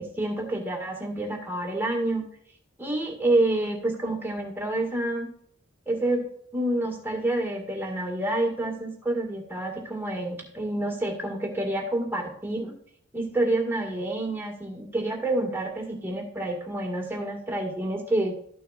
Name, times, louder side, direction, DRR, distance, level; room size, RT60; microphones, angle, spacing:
voice 1, 0.0-2.2 2.8-5.3 5.9-6.3 6.5-12.8 13.1-18.4, right 1 dB, 10° right, 0 dB, 1.9 m, -28 dB
13.5 x 6.3 x 2.5 m, 0.64 s
head